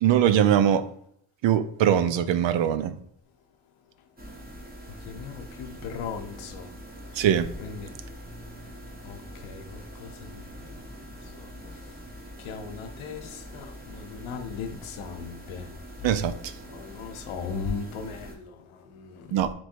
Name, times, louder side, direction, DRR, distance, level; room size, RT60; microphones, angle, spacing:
voice 1, 0.0-0.9 1.4-3.0 7.2-7.5 16.0-16.5 19.3-19.5, right 9 dB, 65° right, 12 dB, 0.6 m, -22 dB
sound 1, 4.2-18.4, equal, 20° right, 1.2 m, -43 dB
voice 2, 5.1-6.7 7.6-7.9 9.0-10.4 12.4-15.7 16.7-19.3, left 6 dB, 90° left, 6 dB, 0.8 m, -38 dB
3.1 x 3.0 x 4.4 m, 0.67 s
cardioid pair, 65°, 48 cm